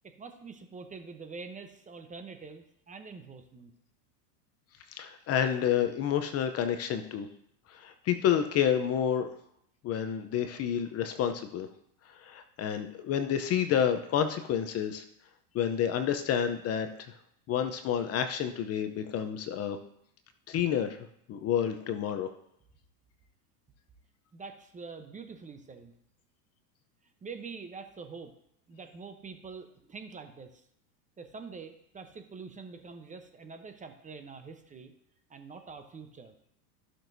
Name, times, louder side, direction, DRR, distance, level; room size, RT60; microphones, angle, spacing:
voice 1, 0.0-3.7 24.3-25.9 27.2-28.3 28.7-30.6 31.2-34.9 35.3-36.3, right 4 dB, 15° right, 7 dB, 0.8 m, -45 dB
voice 2, 4.9-7.3 7.7-9.3 9.8-11.7 12.2-15.0 15.5-17.1 17.5-19.8 20.5-21.0 21.3-22.3, left 9 dB, 30° left, 9 dB, 0.7 m, -29 dB
14.5 x 6.2 x 2.7 m, 0.72 s
hypercardioid pair, 115°, 49 cm